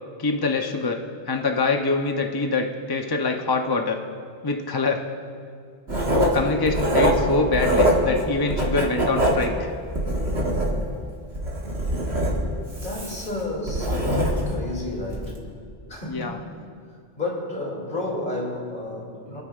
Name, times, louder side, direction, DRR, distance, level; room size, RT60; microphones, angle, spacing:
voice 1, 0.2-1.0 1.3-4.0 4.4-5.0 6.1-9.7 16.0-16.4, left 3 dB, 25° left, 2 dB, 0.6 m, -24 dB
Writing, 5.9-8.2 8.5-11.0 11.3-14.6 15.1-15.3, right 1 dB, 85° right, 2.1 m, -23 dB
voice 2, 12.8-15.4 15.9-16.5 17.2-19.4, left 2 dB, 50° left, -3 dB, 2.9 m, -31 dB
28.0 x 10.0 x 2.4 m, 2.3 s
omnidirectional pair, 1.1 m